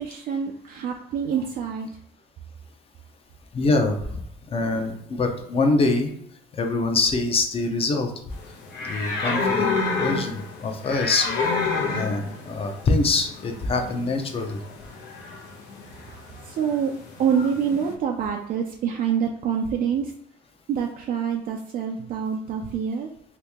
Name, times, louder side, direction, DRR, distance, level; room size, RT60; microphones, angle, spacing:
voice 1, 0.0-1.9 16.1-16.9 17.2-20.1 20.7-23.1, right 7 dB, 55° right, 2 dB, 0.4 m, -26 dB
voice 2, 3.5-4.0 4.5-6.1 6.5-8.1 8.8-11.4 11.9-14.6, left 3 dB, 35° left, 5 dB, 0.6 m, -24 dB
sound 1, 8.3-17.9, left 4 dB, 85° left, 0.8 m, -30 dB
2.9 x 2.7 x 3.4 m, 0.70 s
cardioid pair, 110°, 17 cm